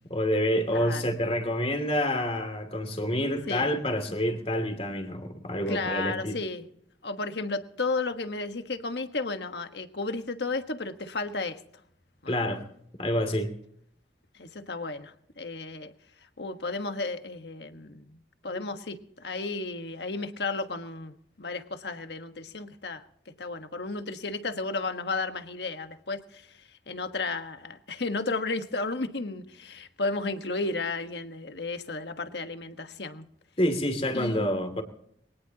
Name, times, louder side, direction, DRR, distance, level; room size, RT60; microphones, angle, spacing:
voice 1, 0.1-6.4 12.3-12.6 13.0-13.5 18.5-18.6 33.6-34.8, equal, 35° left, 6 dB, 2.6 m, -28 dB
voice 2, 0.7-1.0 3.5-3.7 5.7-6.7 7.0-11.6 12.2-12.3 14.3-15.9 16.4-18.2 18.4-23.0 23.4-26.5 26.9-33.2 34.1-34.6, left 3 dB, 65° left, 8 dB, 1.4 m, -33 dB
23.5 x 18.0 x 2.9 m, 0.68 s
head